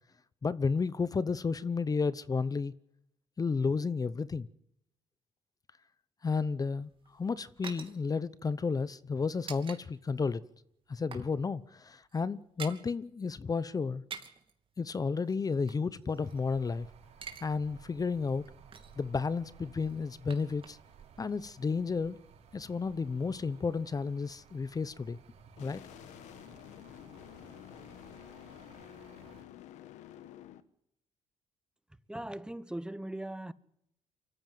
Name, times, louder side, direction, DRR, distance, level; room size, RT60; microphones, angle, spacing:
voice 1, 0.4-2.7 3.4-4.5 6.2-10.4 10.9-14.0 14.8-16.9 17.4-18.5 19.0-20.8 21.2-22.2 22.5-25.2 25.6-25.8, left 4 dB, 30° left, 0.9 m, -32 dB
sound 1, 6.8-9.8 10.1-10.3 10.6-11.3 11.6-11.7 12.0-12.9 13.9-14.5 15.2-16.7 17.0-17.5 17.8-17.9 18.3-19.1 19.7-21.0 21.3-21.4, right 6 dB, 45° right, 3.0 m, -48 dB
sound 2, 16.2-29.4, right 6 dB, 65° right, 5.2 m, -57 dB
sound 3, 25.6-30.6, left 11 dB, 85° left, 1.2 m, -50 dB
voice 2, 32.1-33.5, right 1 dB, 5° right, 0.9 m, -39 dB
24.0 x 14.5 x 9.2 m
supercardioid pair, 75°, 12 cm